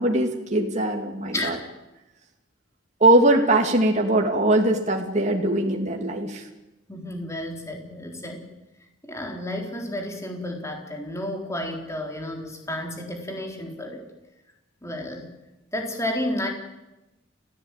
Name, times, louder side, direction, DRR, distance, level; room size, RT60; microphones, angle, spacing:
voice 1, 0.0-1.6 3.0-6.4, right 1 dB, 35° right, 2 dB, 2.8 m, -21 dB
voice 2, 6.9-8.5 9.0-14.0 14.8-15.3 15.7-16.5, left 1 dB, 15° left, 2 dB, 4.1 m, -31 dB
29.5 x 16.5 x 9.3 m, 1.0 s
head